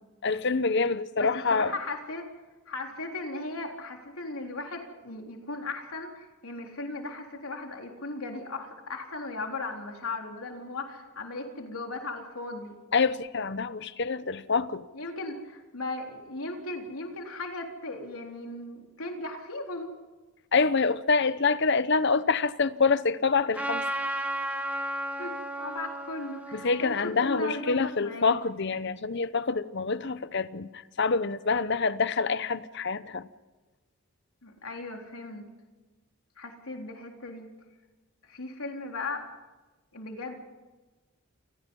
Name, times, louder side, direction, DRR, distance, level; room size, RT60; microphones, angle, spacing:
voice 1, 0.2-1.7 12.9-14.8 20.5-23.8 26.5-33.3, left 4 dB, 55° left, 0.9 m, -26 dB
voice 2, 1.2-2.3 2.7-12.8 14.9-19.9 25.2-28.3 34.4-35.5 36.4-37.5 38.3-39.3 39.9-40.4, left 2 dB, 80° left, 3.8 m, -37 dB
Trumpet, 23.5-28.2, right 1 dB, 5° right, 2.0 m, -34 dB
28.0 x 19.5 x 5.5 m
head